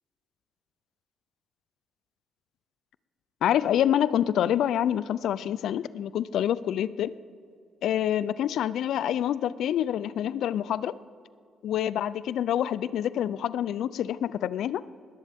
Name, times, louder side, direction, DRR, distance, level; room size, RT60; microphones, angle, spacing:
voice 1, 3.4-7.1 7.8-10.9 11.6-14.8, left 10 dB, 75° left, 17 dB, 0.4 m, -27 dB
19.5 x 15.0 x 3.5 m, 2.3 s
cardioid pair, 90°, 0 cm